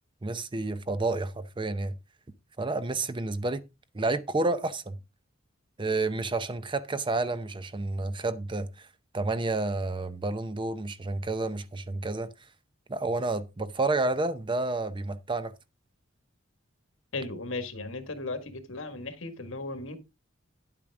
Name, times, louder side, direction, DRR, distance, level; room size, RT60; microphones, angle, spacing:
voice 1, 0.2-1.9 2.6-3.6 3.9-5.0 5.8-8.9 9.1-12.3 12.9-15.5, right 2 dB, 25° right, 0.7 m, -30 dB
voice 2, 17.1-20.0, left 2 dB, 75° left, 1.8 m, -36 dB
10.0 x 8.6 x 3.6 m
head